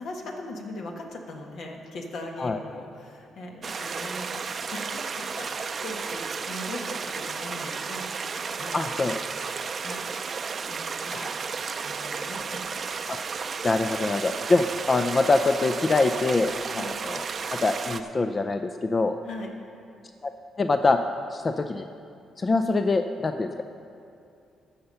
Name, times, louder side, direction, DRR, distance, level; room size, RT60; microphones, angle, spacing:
voice 1, 0.0-7.0 7.3-8.1 8.6-9.1 9.7-10.2 10.6-11.3 11.8-12.7 16.7-16.9 19.2-19.6, left 1 dB, 75° left, 1 dB, 1.5 m, -39 dB
sound 1, 3.6-18.0, right 5 dB, 50° right, 0.5 m, -33 dB
voice 2, 8.7-9.2 11.1-11.3 13.1-13.2 13.6-17.2 17.5-19.2 20.2-20.3 20.6-21.0 21.3-21.8 22.4-23.6, left 3 dB, 35° left, 7 dB, 0.4 m, -24 dB
14.5 x 5.7 x 5.6 m, 2.5 s
cardioid pair, 75°, 0 cm